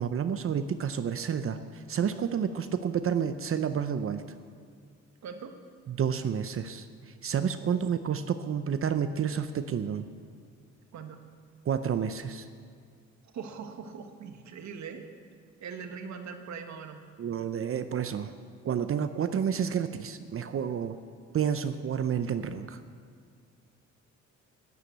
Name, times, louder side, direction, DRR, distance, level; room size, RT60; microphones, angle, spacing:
voice 1, 0.0-4.2 5.9-10.1 11.6-12.5 17.2-18.4 18.6-21.0 21.3-22.8, right 7 dB, 45° right, 10 dB, 0.6 m, -30 dB
voice 2, 5.2-5.6 7.7-7.9 10.9-11.2 13.3-15.1 15.6-17.0, right 6 dB, 70° right, 6 dB, 1.4 m, -41 dB
11.5 x 9.7 x 8.1 m, 2.1 s
cardioid pair, 90°, 30 cm